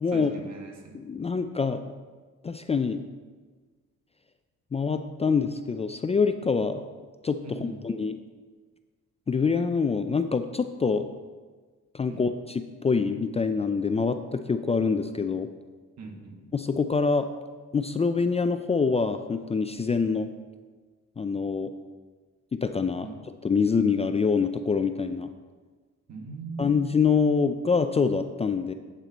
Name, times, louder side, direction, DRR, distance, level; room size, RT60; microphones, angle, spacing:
voice 1, 0.1-1.0 7.4-7.8 12.1-12.3 16.0-16.4 23.0-23.2 26.1-26.7, right 3 dB, 60° right, 3 dB, 1.6 m, -40 dB
voice 2, 0.9-1.8 2.4-3.0 4.7-6.8 7.2-8.2 9.3-11.1 11.9-15.5 16.5-17.3 17.7-20.3 21.2-21.7 22.5-23.1 23.4-25.3 26.6-28.7, left 5 dB, 20° left, 9 dB, 0.4 m, -25 dB
8.2 x 7.4 x 4.0 m, 1.4 s
cardioid pair, 90°, 30 cm